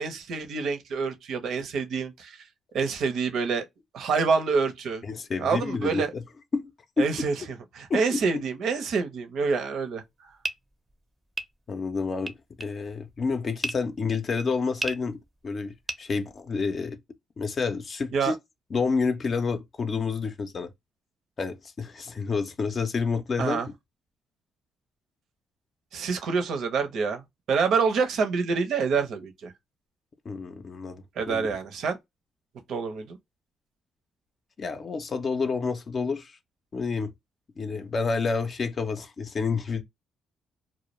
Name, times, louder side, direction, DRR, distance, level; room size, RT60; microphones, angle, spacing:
voice 1, 0.0-2.4 2.7-3.7 3.9-5.0 5.4-6.1 7.0-7.3 7.7-10.3 18.1-18.3 23.4-23.7 25.9-27.2 27.5-29.5 31.2-32.0 32.7-33.2, right 5 dB, 70° right, 0.6 m, -27 dB
voice 2, 5.1-6.2 6.5-6.7 7.0-7.1 7.9-8.4 11.7-12.3 12.6-17.0 17.4-18.3 18.7-20.7 21.4-23.6 30.3-31.6 34.6-36.4 36.7-37.1 37.6-39.8, left 4 dB, 45° left, 0.4 m, -29 dB
sound 1, 10.1-16.8, right 2 dB, 15° right, 0.5 m, -37 dB
2.2 x 2.1 x 2.9 m
cardioid pair, 90°, 0 cm